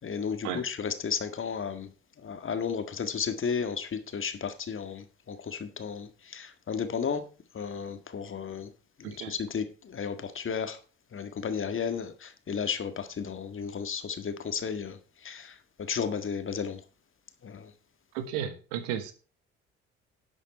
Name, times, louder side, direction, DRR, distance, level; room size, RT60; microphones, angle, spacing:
voice 1, 0.0-1.9 2.2-7.3 7.5-8.7 9.0-10.8 11.1-16.8 17.4-17.7, left 6 dB, 40° left, 1.8 m, -33 dB
voice 2, 18.1-19.1, right 9 dB, 70° right, 1.6 m, -33 dB
11.0 x 8.0 x 4.3 m
figure-of-eight pair, 45°, 31 cm